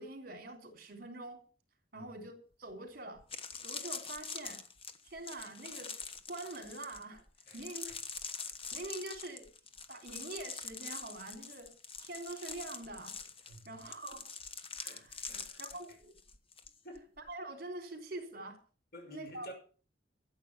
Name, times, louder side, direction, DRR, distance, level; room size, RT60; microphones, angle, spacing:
voice 1, 0.0-1.4 1.9-3.2 3.6-4.6 5.0-5.9 6.3-7.2 7.5-7.8 8.7-9.5 9.9-11.7 12.0-13.1 13.6-14.2 14.8-15.2 15.6-16.1 17.3-18.6 19.1-19.5, right 2 dB, 55° right, 3.5 m, -45 dB
sound 1, 2.7-2.8 3.2-16.7 17.0-17.3, left 5 dB, 30° left, 1.2 m, -44 dB
voice 2, 7.5-8.0 13.5-13.8 14.8-15.6 16.8-17.1 18.9-19.5, right 1 dB, 55° left, 5.8 m, -51 dB
13.5 x 8.1 x 7.4 m
head